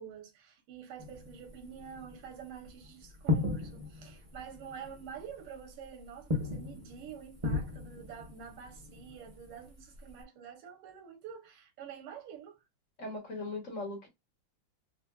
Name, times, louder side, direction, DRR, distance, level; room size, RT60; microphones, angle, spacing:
voice 1, 0.0-12.6, right 7 dB, 90° right, 1.8 m, -47 dB
sound 1, 1.0-10.2, left 3 dB, 35° right, 0.5 m, -38 dB
voice 2, 13.0-14.1, left 2 dB, 40° left, 1.3 m, -39 dB
5.0 x 2.2 x 2.3 m
omnidirectional pair, 2.4 m